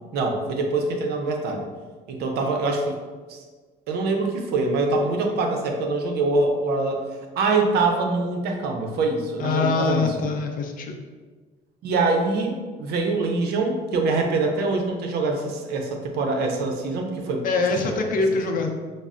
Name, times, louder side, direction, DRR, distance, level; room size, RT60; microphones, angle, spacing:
voice 1, 0.1-1.7 2.1-3.0 3.3-3.4 3.9-7.0 7.4-10.1 11.8-17.5 17.8-18.0, right 3 dB, 75° right, 3 dB, 0.6 m, -24 dB
voice 2, 9.4-10.9 17.4-18.7, left 4 dB, 55° left, 3 dB, 0.5 m, -24 dB
5.1 x 2.0 x 2.4 m, 1.4 s
cardioid pair, 110°, 17 cm